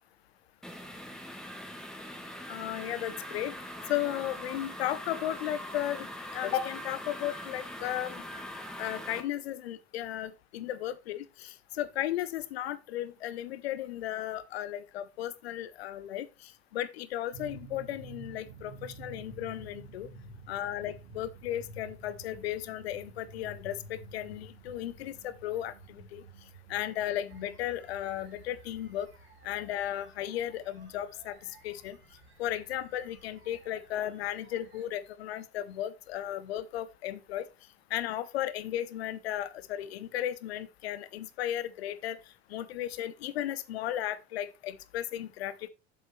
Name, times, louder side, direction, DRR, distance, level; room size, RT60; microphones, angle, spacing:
sound 1, 0.6-9.2, left 1 dB, ahead, 1.8 m, -42 dB
voice 1, 2.5-3.5 3.9-6.1 6.3-8.2 8.8-20.1 20.5-26.2 26.7-29.1 29.4-31.4 31.6-32.0 32.4-37.5 37.9-42.2 42.5-45.7, left 12 dB, 75° left, 0.8 m, -35 dB
sound 2, 17.3-29.3, right 2 dB, 75° right, 2.2 m, -50 dB
sound 3, 27.3-34.9, right 3 dB, 35° right, 2.7 m, -58 dB
7.5 x 7.2 x 3.1 m
figure-of-eight pair, 70°, 32 cm